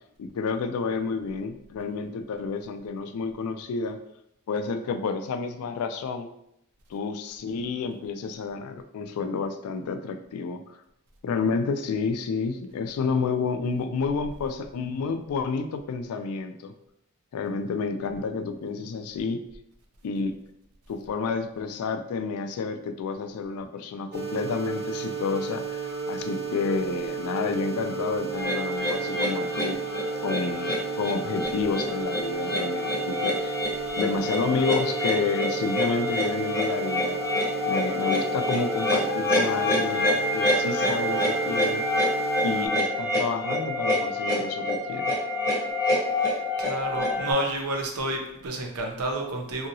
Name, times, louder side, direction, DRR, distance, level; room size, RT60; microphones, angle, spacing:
voice 1, 0.2-4.0 4.5-6.3 6.9-10.6 11.2-16.7 17.3-19.4 20.0-20.4 20.9-29.8 30.2-33.5 34.0-37.2 37.6-41.8 42.4-45.1, left 4 dB, 80° left, 8 dB, 0.3 m, -30 dB
sound 1, 24.1-42.7, right 5 dB, 45° right, 0.6 m, -33 dB
sound 2, 28.3-47.3, left 1 dB, 15° left, 0.7 m, -27 dB
voice 2, 46.2-49.7, right 1 dB, 85° right, 2 dB, 0.6 m, -30 dB
2.8 x 2.7 x 2.6 m, 0.78 s
head